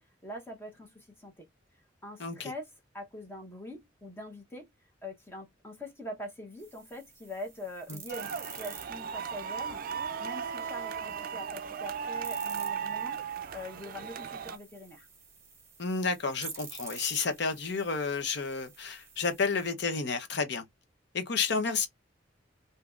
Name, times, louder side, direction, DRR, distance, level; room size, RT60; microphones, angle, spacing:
voice 1, 0.0-1.5 2.0-4.7 5.0-13.2 13.5-15.1, left 1 dB, 15° left, 0.8 m, -43 dB
voice 2, 2.2-2.5 7.9-8.0 15.8-20.6 21.1-21.9, left 4 dB, 65° left, 0.7 m, -31 dB
sound 1, 6.6-19.7, right 5 dB, 15° right, 1.1 m, -50 dB
sound 2, 8.1-14.6, right 7 dB, 50° right, 0.4 m, -36 dB
3.5 x 2.7 x 2.3 m
head